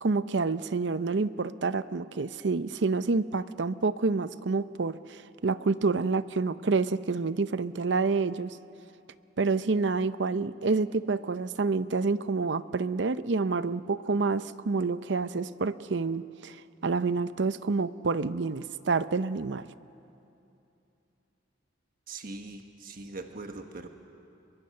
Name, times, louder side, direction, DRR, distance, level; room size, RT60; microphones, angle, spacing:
voice 1, 0.0-8.6 9.4-16.6 16.8-19.7, right 4 dB, 65° right, 14 dB, 0.6 m, -28 dB
voice 2, 22.1-23.9, right 3 dB, 50° right, 5 dB, 1.3 m, -41 dB
29.0 x 23.0 x 6.6 m, 2.8 s
head